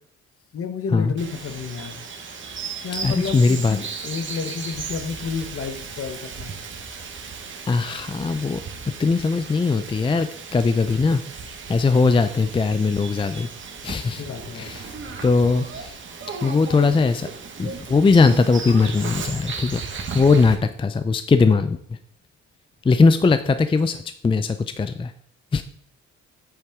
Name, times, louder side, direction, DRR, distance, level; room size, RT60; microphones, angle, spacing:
voice 1, 0.5-2.0 2.8-6.5 14.2-14.8, left 5 dB, 50° left, 8 dB, 1.1 m, -31 dB
Bird vocalization bird call bird song, 1.2-20.5, right 5 dB, 40° right, 1.5 m, -36 dB
voice 2, 3.0-3.8 7.7-8.6 9.0-13.5 13.8-14.2 14.5-14.9 15.2-16.0 16.4-17.3 17.6-19.8 20.1-21.8 22.8-24.0 24.2-25.1 25.5-25.6, left 4 dB, 15° left, 10 dB, 0.4 m, -20 dB
8.1 x 6.6 x 3.6 m, 0.63 s
cardioid pair, 90°, 30 cm